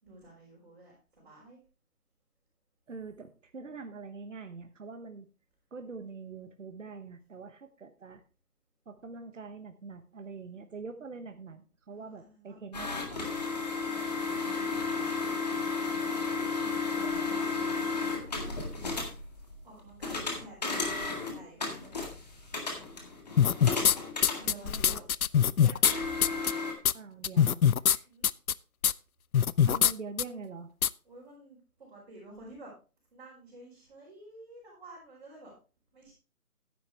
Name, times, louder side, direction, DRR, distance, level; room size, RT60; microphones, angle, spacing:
voice 1, 0.0-1.6 11.9-12.6 13.4-15.6 16.8-18.9 19.6-22.0 24.3-25.1 25.5-26.5 28.0-28.3 31.0-32.7 33.1-35.5 35.9-36.1, right 1 dB, 35° right, -6 dB, 4.7 m, -51 dB
voice 2, 2.9-5.3 5.7-8.2 8.9-13.3 17.0-17.2 24.5-25.0 26.9-27.6 27.9-28.1 29.7-30.7, right 4 dB, 55° right, 8 dB, 1.1 m, -44 dB
sound 1, 12.7-25.0 25.8-26.7, left 4 dB, 30° left, 1.9 m, -33 dB
sound 2, 23.4-23.9 24.2-25.9 26.2-26.5 26.8-26.9 27.2-28.0 28.2-28.5 28.8-28.9 29.3-29.9 30.2-30.3 30.8-30.9, left 9 dB, 70° left, 0.5 m, -23 dB
11.0 x 9.9 x 3.3 m, 0.32 s
figure-of-eight pair, 165°, 44 cm